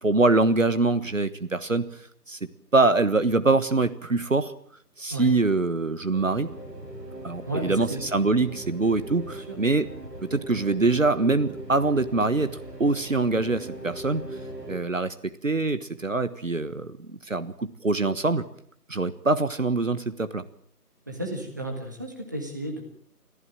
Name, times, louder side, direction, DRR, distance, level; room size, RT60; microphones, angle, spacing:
voice 1, 0.0-1.8 2.3-2.4 2.7-4.5 5.0-6.5 7.2-9.9 10.3-14.2 14.7-18.4 18.9-20.4, right 3 dB, 55° right, 12 dB, 1.4 m, -24 dB
sound 1, 6.1-14.8, right 1 dB, 85° right, 7.0 m, -40 dB
voice 2, 7.5-8.0 21.1-22.8, right 1 dB, 10° right, 2 dB, 1.4 m, -33 dB
25.0 x 15.0 x 8.8 m, 0.62 s
figure-of-eight pair, 165°, 48 cm